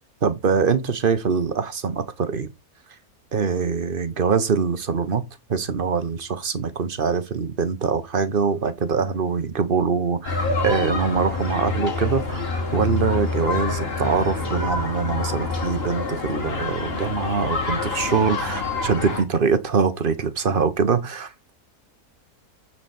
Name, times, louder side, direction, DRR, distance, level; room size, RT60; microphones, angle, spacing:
voice 1, 0.2-2.5 3.3-5.2 5.5-12.4 12.7-21.5, right 5 dB, 40° right, 1.1 m, -23 dB
sound 1, 10.2-19.2, left 3 dB, 40° left, 2.5 m, -27 dB
9.6 x 4.6 x 4.2 m
omnidirectional pair, 1.5 m